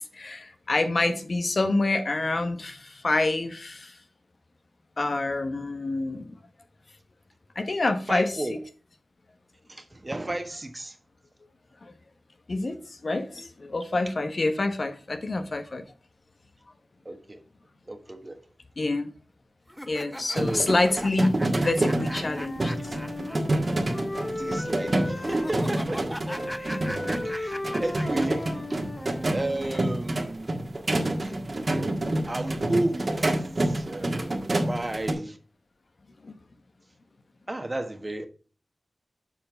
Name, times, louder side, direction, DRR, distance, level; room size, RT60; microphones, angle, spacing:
voice 1, 0.0-3.9 5.0-6.3 7.6-8.3 11.8-11.9 12.5-15.8 18.8-19.1 19.9-22.7 36.2-36.3, left 2 dB, 60° left, 1.0 m, -27 dB
voice 2, 8.1-8.5 9.7-11.0 17.0-17.4 17.9-18.4 20.3-20.7 22.8-22.9 24.4-26.2 26.5-26.8 27.1-29.0 29.3-30.8 31.2-31.3 32.3-34.3 34.6-35.4 37.5-38.3, right 2 dB, 35° right, 1.3 m, -33 dB
sound 1, 19.7-23.4 23.6-23.7 25.2-28.3, equal, 5° left, 0.6 m, -38 dB
sound 2, 20.4-35.1, right 1 dB, 50° right, 1.6 m, -28 dB
Wind instrument woodwind instrument, 21.6-25.6 26.3-29.8, left 1 dB, 40° left, 1.9 m, -36 dB
7.4 x 4.4 x 5.7 m
cardioid pair, 45°, 0 cm